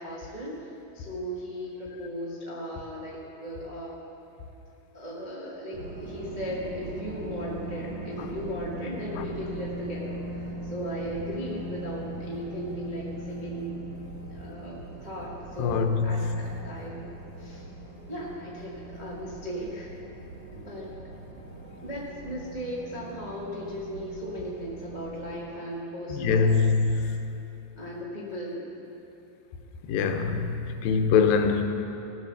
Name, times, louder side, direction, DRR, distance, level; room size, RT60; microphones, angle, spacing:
voice 1, 0.0-4.0 4.9-13.8 14.2-17.1 17.4-17.7 18.1-19.9 20.5-20.9 21.8-27.0 27.8-28.7, equal, 80° right, -6 dB, 0.4 m, -37 dB
sound 1, 5.7-25.4, right 1 dB, 50° right, 3.3 m, -40 dB
voice 2, 15.6-16.0 26.1-26.9 29.9-31.6, left 5 dB, 80° left, 6 dB, 2.5 m, -23 dB
17.0 x 7.5 x 6.5 m, 2.9 s
omnidirectional pair, 4.2 m